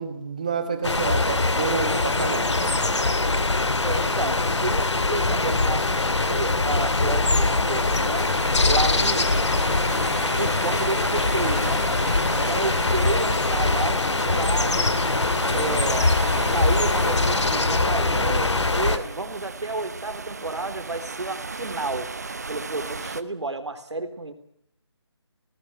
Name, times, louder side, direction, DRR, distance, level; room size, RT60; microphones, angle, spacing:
voice 1, 0.0-2.7, right 5 dB, 15° right, 9 dB, 1.4 m, -29 dB
Calm countrie, 0.8-19.0, left 2 dB, 90° left, 2.3 m, -23 dB
voice 2, 3.8-8.3 8.7-9.4 10.4-11.8 12.3-15.0 15.5-22.1 22.5-24.3, right 2 dB, 85° right, 9 dB, 3.8 m, -31 dB
sound 1, 7.7-23.2, right 4 dB, 35° right, 0.9 m, -35 dB
sound 2, 7.8-14.6, left 2 dB, 40° left, 4.7 m, -34 dB
20.0 x 19.0 x 8.1 m, 0.71 s
figure-of-eight pair, 175°, 14 cm